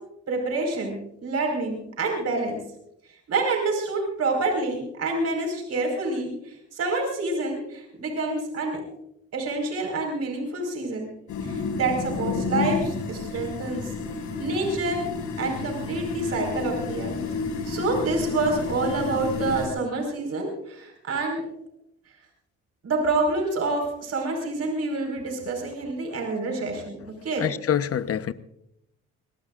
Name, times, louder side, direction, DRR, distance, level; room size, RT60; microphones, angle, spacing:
voice 1, 0.3-2.6 3.3-8.8 9.3-11.1 11.4-13.9 14.4-15.0 15.4-17.1 17.6-21.5 22.8-27.0 27.2-27.4, right 3 dB, 55° right, 5.0 m, -27 dB
sound 1, 11.3-19.7, left 4 dB, 75° left, 7.1 m, -30 dB
voice 2, 27.4-28.3, left 9 dB, 50° left, 1.0 m, -26 dB
25.5 x 20.5 x 2.5 m
cardioid pair, 90°, 30 cm